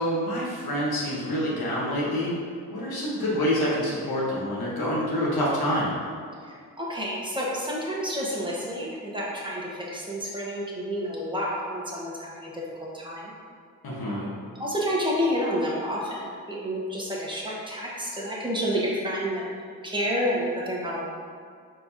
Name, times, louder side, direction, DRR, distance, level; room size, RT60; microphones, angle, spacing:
voice 1, 0.0-2.4 2.7-5.9 13.8-14.3, equal, 75° left, -6 dB, 1.3 m, -27 dB
voice 2, 6.8-12.6 12.9-13.3 14.1-14.2 14.6-19.4 19.8-21.0, equal, 15° right, -5 dB, 1.2 m, -29 dB
4.5 x 3.7 x 2.8 m, 2.2 s
cardioid pair, 50°, 37 cm